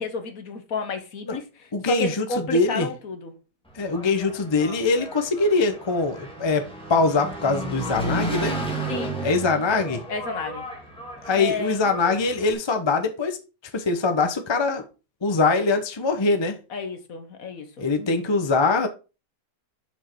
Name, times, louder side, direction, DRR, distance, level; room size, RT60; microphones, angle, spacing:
voice 1, 0.0-3.4 8.9-9.1 9.7-10.6 11.3-11.9 16.7-18.1, left 3 dB, 60° left, 1.5 m, -32 dB
voice 2, 1.7-2.9 3.7-8.6 9.2-10.0 11.2-13.4 13.7-14.8 15.2-16.5 17.8-18.9, left 3 dB, 25° left, 0.7 m, -23 dB
Engine, 3.7-12.5, right 2 dB, 5° left, 2.0 m, -33 dB
6.3 x 5.8 x 4.6 m
omnidirectional pair, 1.8 m